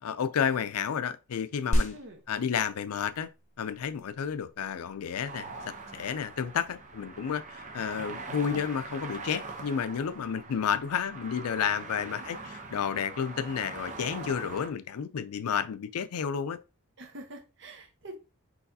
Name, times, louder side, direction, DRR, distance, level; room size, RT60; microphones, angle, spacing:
voice 1, 0.0-1.9 2.3-3.3 3.6-16.6, left 7 dB, 85° left, 0.4 m, -31 dB
sound 1, 1.7-11.7, equal, 35° left, 0.7 m, -37 dB
sound 2, 5.3-14.7, right 3 dB, 35° right, 0.7 m, -43 dB
voice 2, 12.3-12.6 17.0-18.2, right 1 dB, 55° right, 1.1 m, -46 dB
4.6 x 4.0 x 2.7 m
head